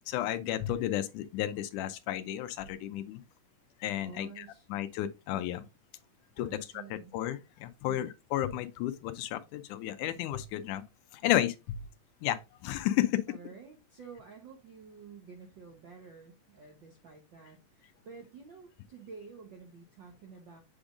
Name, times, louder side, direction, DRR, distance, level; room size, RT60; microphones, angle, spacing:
voice 1, 0.1-3.2 3.8-4.5 4.7-5.7 6.4-6.5 6.9-10.8 11.1-11.8 12.2-13.3, left 13 dB, 80° left, 2.0 m, -32 dB
voice 2, 4.0-5.0 6.4-7.1 7.8-8.1 13.3-20.6, right 5 dB, 70° right, 1.1 m, -50 dB
8.0 x 5.1 x 2.5 m
omnidirectional pair, 3.7 m